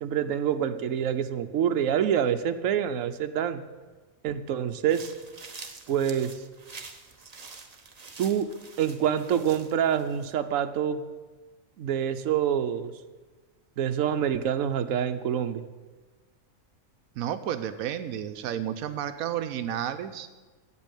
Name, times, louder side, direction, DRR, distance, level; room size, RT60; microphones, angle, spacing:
voice 1, 0.0-3.6 4.2-5.1 5.9-6.3 8.2-8.5 8.8-11.0 11.8-12.9 13.8-15.6, right 9 dB, 75° right, 8 dB, 1.1 m, -26 dB
sound 1, 4.9-10.3, right 4 dB, 30° right, 0.9 m, -46 dB
voice 2, 17.2-20.3, right 10 dB, 90° right, 9 dB, 1.1 m, -31 dB
8.5 x 8.4 x 8.9 m, 1.3 s
omnidirectional pair, 1.4 m